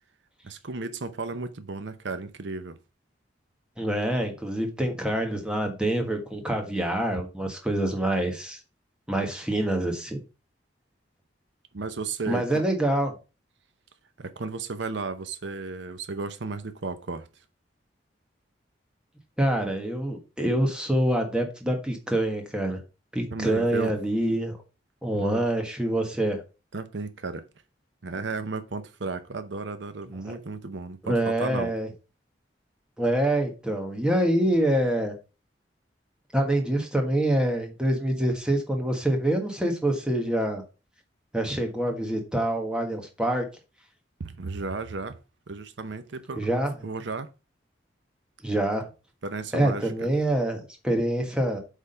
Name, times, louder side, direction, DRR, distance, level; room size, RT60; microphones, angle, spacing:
voice 1, 0.4-2.8 11.7-12.6 14.2-17.3 23.3-23.9 25.1-25.5 26.7-27.5 28.0-31.7 44.2-45.2 45.5-46.5 46.8-47.3 49.2-50.1, right 4 dB, 70° right, 0.7 m, -34 dB
voice 2, 3.8-8.6 9.1-10.2 12.3-13.1 19.4-22.8 23.1-24.6 25.0-26.4 30.2-30.4 31.0-31.9 33.0-35.1 36.3-40.6 41.3-43.4 46.4-46.7 48.4-48.9 49.5-51.6, right 1 dB, 5° right, 1.5 m, -26 dB
8.1 x 3.7 x 5.5 m
head